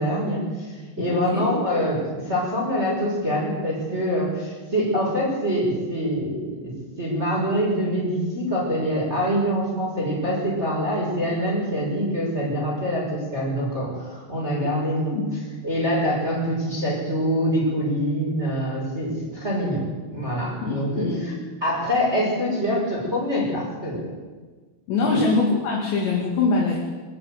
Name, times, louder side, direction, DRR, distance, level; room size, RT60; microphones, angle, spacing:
voice 1, 0.0-15.2 15.6-19.9 20.1-21.3 21.6-24.1 25.0-25.2, equal, 10° right, -4 dB, 5.9 m, -25 dB
voice 2, 1.1-1.5 14.6-14.7 15.1-15.3 20.6-21.4 24.9-26.8, left 3 dB, 60° left, -2 dB, 4.5 m, -23 dB
23.0 x 14.0 x 9.2 m, 1.4 s
omnidirectional pair, 5.9 m